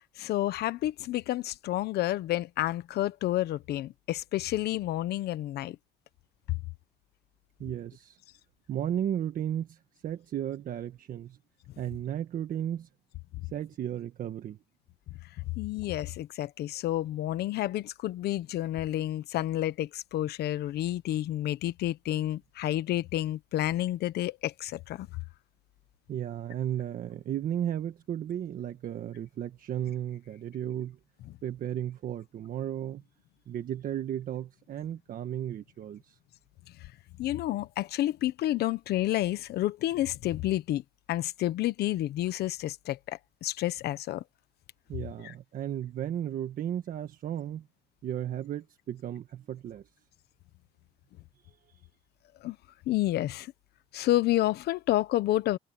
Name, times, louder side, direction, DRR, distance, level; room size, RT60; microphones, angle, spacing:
voice 1, 0.2-5.8 6.5-6.6 15.6-25.1 37.2-40.8 41.1-44.2 45.2-45.3 52.4-52.6 52.9-53.5 53.9-55.6, left 14 dB, 70° left, 1.2 m, -30 dB
voice 2, 7.6-8.2 8.7-11.4 11.8-12.9 13.5-14.6 26.1-31.0 31.4-33.0 33.5-36.2 44.9-47.7 48.0-49.8, right 10 dB, 55° right, 1.5 m, -34 dB
cardioid pair, 110°, 17 cm